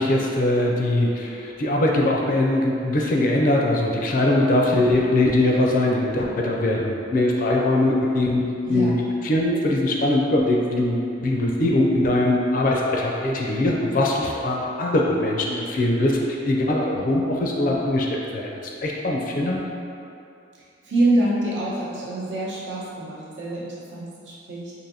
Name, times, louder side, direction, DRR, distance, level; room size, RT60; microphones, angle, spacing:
voice 1, 0.0-8.4 8.7-8.9 9.2-19.6, left 1 dB, 45° left, -1 dB, 0.4 m, -21 dB
voice 2, 20.8-24.7, right 1 dB, 70° right, -7 dB, 0.8 m, -25 dB
4.7 x 2.6 x 2.7 m, 2.6 s
head